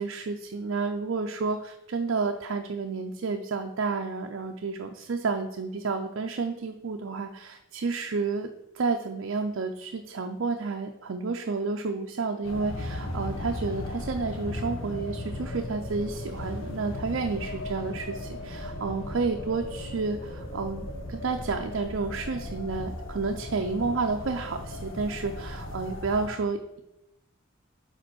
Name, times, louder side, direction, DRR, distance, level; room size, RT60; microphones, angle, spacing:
voice 1, 0.0-8.5 8.7-26.8, right 4 dB, 70° right, 3 dB, 0.5 m, -30 dB
sound 1, 12.4-26.3, left 1 dB, 75° left, 1.0 m, -36 dB
5.0 x 4.4 x 6.1 m, 0.89 s
head